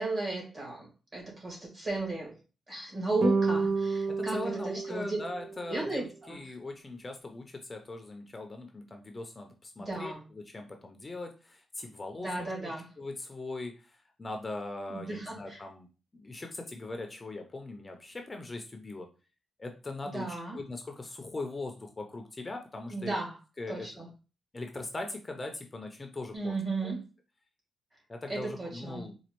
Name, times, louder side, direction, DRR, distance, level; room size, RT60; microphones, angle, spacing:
voice 1, 0.0-2.4 2.7-5.2 5.7-6.4 9.8-10.2 12.2-12.9 14.9-15.6 20.0-20.6 22.9-23.4 23.7-24.1 26.3-27.1 28.3-29.1, right 2 dB, 40° right, -2 dB, 1.8 m, -35 dB
sound 1, 3.2-5.8, right 4 dB, 55° right, 0.4 m, -30 dB
voice 2, 4.1-12.7 13.0-15.9 16.1-19.1 19.6-23.1 23.6-23.9 24.5-26.6 26.8-26.9 28.1-29.1, left 2 dB, 25° left, 4 dB, 0.5 m, -40 dB
4.2 x 2.3 x 2.9 m, 0.33 s
cardioid pair, 95°, 0 cm